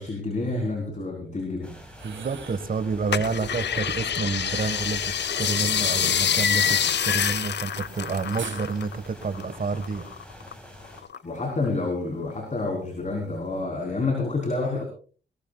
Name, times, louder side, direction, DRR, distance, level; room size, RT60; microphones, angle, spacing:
voice 1, 0.0-1.7 11.2-14.8, left 3 dB, 40° left, 1 dB, 4.1 m, -28 dB
sound 1, 1.6-11.0, equal, 5° left, 6.0 m, -45 dB
sound 2, 1.9-2.7 4.3-5.0 6.5-7.4 8.4-8.7, right 6 dB, 85° right, 3.1 m, -41 dB
voice 2, 2.0-10.1, right 4 dB, 50° right, 12 dB, 1.7 m, -29 dB
sound 3, 3.1-9.0 9.2-10.5 11.0-11.8 12.3-12.4, left 8 dB, 70° left, 0.7 m, -26 dB
20.5 x 20.0 x 2.4 m, 0.40 s
wide cardioid pair, 100°, 19 cm